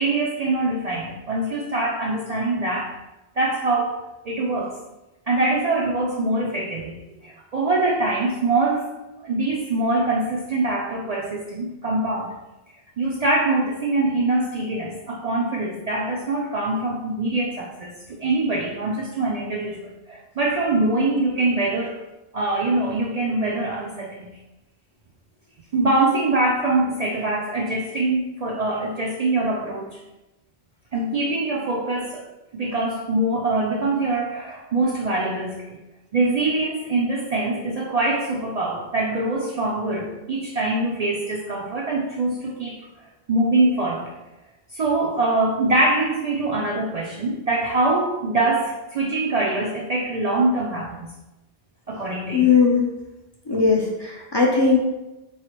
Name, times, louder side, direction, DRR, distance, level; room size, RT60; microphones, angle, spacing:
voice 1, 0.0-3.0 3.4-4.8 5.3-8.9 9.2-12.4 13.0-22.0 22.3-24.3 25.7-30.0 30.9-32.3 32.5-35.8 36.1-42.9 43.3-44.1 44.7-51.1 51.9-52.5, right 2 dB, 55° right, -2 dB, 0.4 m, -24 dB
voice 2, 52.3-52.9 53.5-54.8, left 5 dB, 35° left, -3 dB, 0.5 m, -18 dB
4.7 x 3.1 x 2.9 m, 1.0 s
omnidirectional pair, 1.0 m